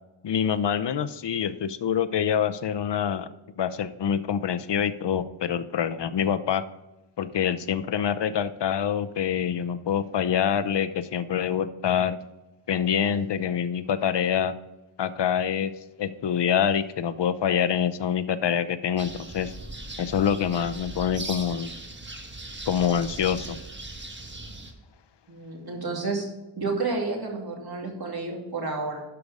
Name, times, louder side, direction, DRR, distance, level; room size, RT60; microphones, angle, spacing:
voice 1, 0.2-3.3 3.6-6.6 7.2-12.2 12.7-14.5 15.0-15.7 16.0-19.5 20.0-21.7 22.7-23.6, left 8 dB, 55° left, 12 dB, 0.7 m, -26 dB
sound 1, 19.0-24.7, right 2 dB, 20° right, 1.3 m, -39 dB
voice 2, 25.3-26.3 26.6-29.0, right 3 dB, 50° right, 0 dB, 2.5 m, -30 dB
11.5 x 5.3 x 4.8 m, 1.0 s
wide cardioid pair, 90°, 49 cm